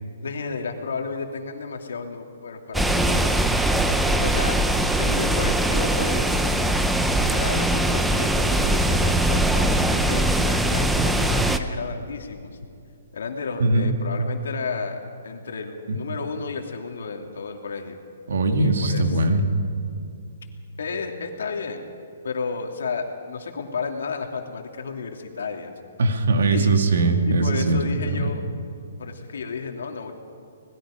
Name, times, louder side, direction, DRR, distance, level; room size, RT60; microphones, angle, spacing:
voice 1, 0.2-3.4 4.2-4.6 5.0-6.5 7.2-12.5 13.1-18.0 18.6-19.2 20.8-21.9 22.2-25.7 26.5-26.7 27.3-28.5 29.0-30.1, left 5 dB, 70° left, 3 dB, 2.7 m, -32 dB
sound 1, 2.7-11.6, right 1 dB, ahead, 0.6 m, -21 dB
voice 2, 13.6-13.9 15.9-16.0 18.3-19.4 26.0-27.8 28.1-28.3, right 2 dB, 60° right, 4 dB, 2.6 m, -20 dB
25.5 x 20.0 x 5.2 m, 2.5 s
hypercardioid pair, 180°, 0 cm